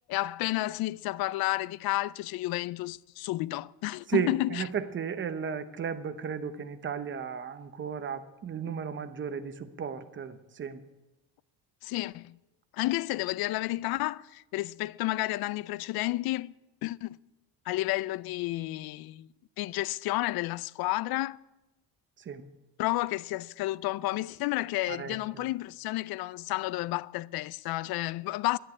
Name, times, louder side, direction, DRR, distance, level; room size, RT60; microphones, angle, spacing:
voice 1, 0.1-4.6 11.8-12.4 12.7-16.5 16.8-17.2 17.7-19.3 19.6-21.4 22.8-28.6, left 18 dB, 70° left, 0.5 m, -31 dB
voice 2, 4.1-10.8 22.3-22.4 24.9-25.5, right 7 dB, 30° right, 0.9 m, -34 dB
11.0 x 10.0 x 9.6 m
cardioid pair, 150°, 38 cm